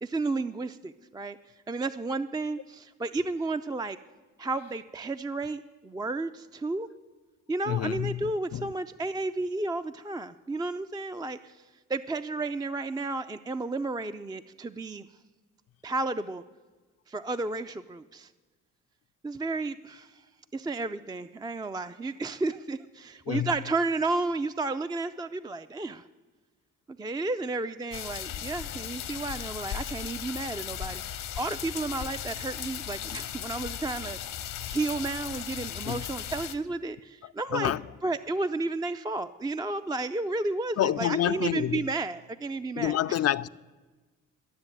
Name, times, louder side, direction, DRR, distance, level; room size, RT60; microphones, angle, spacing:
voice 1, 0.0-1.4 1.7-4.0 4.4-6.9 7.5-11.6 11.9-15.1 15.8-16.4 17.1-18.3 19.2-20.2 20.5-26.1 27.0-34.2 34.7-37.7 38.0-43.2, right 3 dB, 15° right, 0.4 m, -32 dB
voice 2, 7.7-8.7 23.3-23.6 35.9-36.1 37.2-37.8 40.8-41.9 42.8-43.5, left 12 dB, 55° left, 0.4 m, -28 dB
sound 1, 27.9-36.5, left 10 dB, 80° left, 0.9 m, -37 dB
13.0 x 7.1 x 9.0 m
cardioid pair, 65°, 31 cm